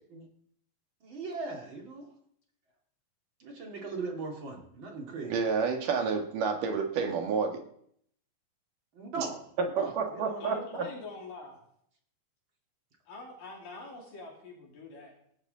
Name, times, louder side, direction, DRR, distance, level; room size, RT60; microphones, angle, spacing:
voice 1, 1.0-2.1 3.4-5.4 8.9-9.4 9.8-10.6, right 3 dB, 40° right, 1 dB, 2.8 m, -39 dB
voice 2, 5.2-7.6 9.2-9.3 9.8-10.8, right 5 dB, 75° right, 4 dB, 3.4 m, -30 dB
voice 3, 10.4-11.6 13.1-15.3, left 3 dB, 80° left, -1 dB, 5.0 m, -45 dB
18.5 x 14.5 x 4.0 m, 0.68 s
omnidirectional pair, 3.8 m